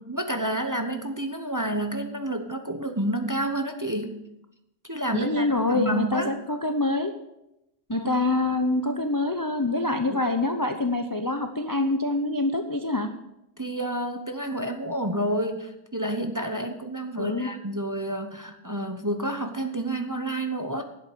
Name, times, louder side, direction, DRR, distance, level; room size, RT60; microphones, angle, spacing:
voice 1, 0.0-4.2 4.9-6.3 7.9-8.1 10.1-10.2 13.6-20.8, right 1 dB, 15° right, 5 dB, 0.8 m, -29 dB
voice 2, 5.1-7.1 7.9-13.1 17.2-17.5, left 2 dB, 25° left, 6 dB, 0.5 m, -25 dB
11.0 x 8.0 x 7.9 m, 0.88 s
omnidirectional pair, 1.5 m